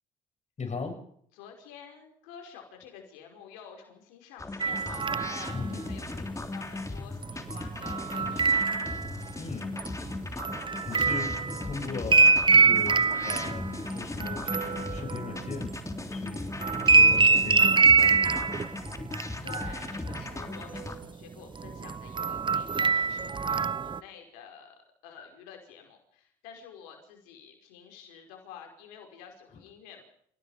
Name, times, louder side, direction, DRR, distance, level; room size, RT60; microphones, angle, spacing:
voice 1, 0.6-1.0 5.5-6.0 9.4-9.8 10.9-15.7 16.1-16.6 16.9-18.3 20.7-20.8 29.5-29.6, left 4 dB, 45° left, 5 dB, 7.5 m, -38 dB
voice 2, 1.3-8.5 19.4-30.0, left 8 dB, 90° left, 3 dB, 5.5 m, -49 dB
sound 1, 4.4-21.0, left 2 dB, 20° left, 3.3 m, -38 dB
sound 2, 4.6-5.6 7.2-9.3 9.8-16.0 16.3-19.2 19.5-20.4 20.7-21.0 21.6-24.0, right 4 dB, 30° right, 0.9 m, -24 dB
29.5 x 17.5 x 5.1 m, 0.65 s
supercardioid pair, 55°, 16 cm